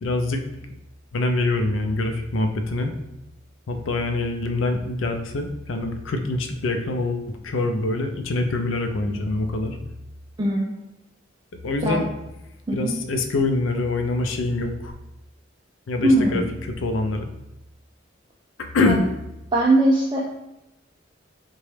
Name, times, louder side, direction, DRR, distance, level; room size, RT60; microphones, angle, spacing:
voice 1, 0.0-0.6 1.1-2.9 3.7-9.8 11.6-12.1 12.7-14.9 15.9-16.4 16.8-17.3 18.6-19.1, left 2 dB, 90° left, 5 dB, 0.4 m, -25 dB
voice 2, 10.4-10.7 11.8-12.0 12.7-12.9 16.0-16.4 18.9-19.0 19.5-20.2, right 1 dB, 25° right, -4 dB, 0.4 m, -20 dB
3.9 x 2.2 x 3.2 m, 0.92 s
head